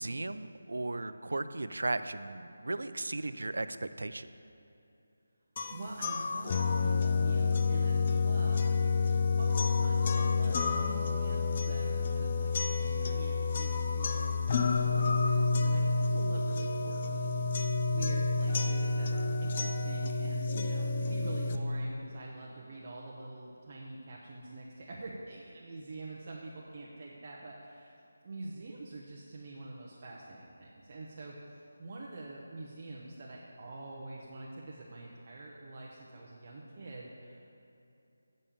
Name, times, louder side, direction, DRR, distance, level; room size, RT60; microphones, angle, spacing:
voice 1, 0.0-4.3, right 2 dB, 85° right, 12 dB, 0.4 m, -36 dB
sound 1, 5.6-21.6, left 4 dB, 30° left, 0.4 m, -29 dB
voice 2, 5.7-8.7 9.0-17.5 17.9-27.9 28.2-37.4, right 2 dB, 30° right, -4 dB, 0.7 m, -45 dB
8.6 x 5.3 x 7.4 m, 2.8 s
figure-of-eight pair, 175°, 0 cm